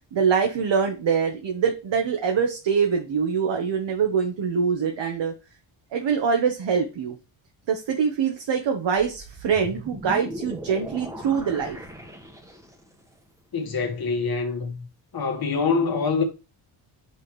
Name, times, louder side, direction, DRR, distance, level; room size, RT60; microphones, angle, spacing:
voice 1, 0.1-5.3 5.9-7.1 7.7-11.8, right 6 dB, 60° right, 1.4 m, -24 dB
sound 1, 9.0-13.0, right 1 dB, 5° right, 1.4 m, -38 dB
voice 2, 13.5-14.9 15.1-16.2, left 4 dB, 45° left, 1.9 m, -25 dB
5.8 x 5.7 x 3.2 m
cardioid pair, 85°, 50 cm